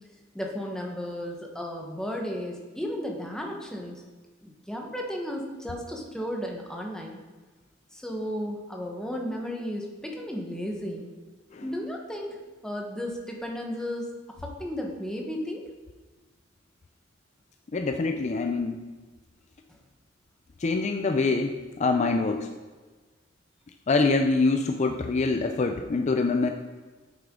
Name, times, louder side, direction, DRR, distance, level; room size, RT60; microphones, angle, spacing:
voice 1, 0.3-4.0 4.4-7.2 7.9-11.1 11.6-12.4 12.6-14.1 14.4-15.6, equal, 5° left, 0 dB, 1.1 m, -34 dB
voice 2, 17.7-18.8 20.6-22.5 23.9-26.5, left 3 dB, 35° left, 6 dB, 0.4 m, -25 dB
8.8 x 6.8 x 3.7 m, 1.3 s
head